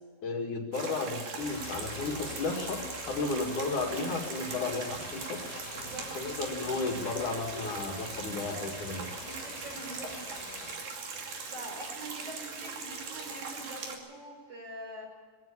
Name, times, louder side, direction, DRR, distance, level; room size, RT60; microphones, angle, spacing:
voice 1, 0.2-2.8 3.1-5.4 6.1-9.1, left 3 dB, 55° left, 2 dB, 3.4 m, -33 dB
sound 1, 0.7-14.0, right 4 dB, 60° right, 4.3 m, -40 dB
sound 2, 1.4-10.8, left 5 dB, 85° left, 4.2 m, -45 dB
voice 2, 5.6-6.1 8.9-10.5 11.5-15.0, right 1 dB, 40° right, 0 dB, 6.0 m, -45 dB
22.0 x 17.0 x 8.7 m, 1.6 s
omnidirectional pair, 4.4 m